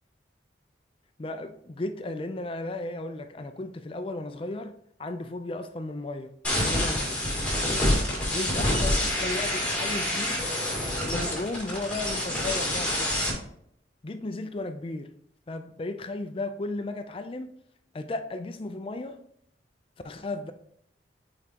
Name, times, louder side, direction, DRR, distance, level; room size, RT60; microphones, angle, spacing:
voice 1, 1.2-4.7 5.0-7.2 8.3-10.4 11.0-13.2 14.0-15.1 15.5-17.5 17.9-19.2 20.0-20.5, left 2 dB, 30° left, 0.4 m, -35 dB
sound 1, 6.4-13.3, left 1 dB, 10° left, 1.8 m, -27 dB
7.0 x 4.8 x 2.8 m
head